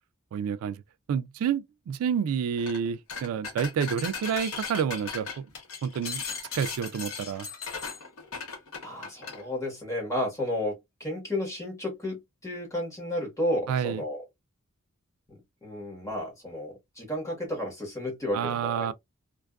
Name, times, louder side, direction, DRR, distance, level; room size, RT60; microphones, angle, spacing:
voice 1, 0.3-0.8 1.1-5.5 5.8-6.2 6.5-7.5 13.7-14.0 18.3-18.9, right 7 dB, 90° right, 0.3 m, -29 dB
sound 1, 2.6-2.8 3.1-9.4, left 5 dB, 75° left, 1.0 m, -37 dB
voice 2, 8.8-14.2 15.3-18.9, left 1 dB, 15° left, 1.3 m, -32 dB
2.5 x 2.3 x 2.3 m
head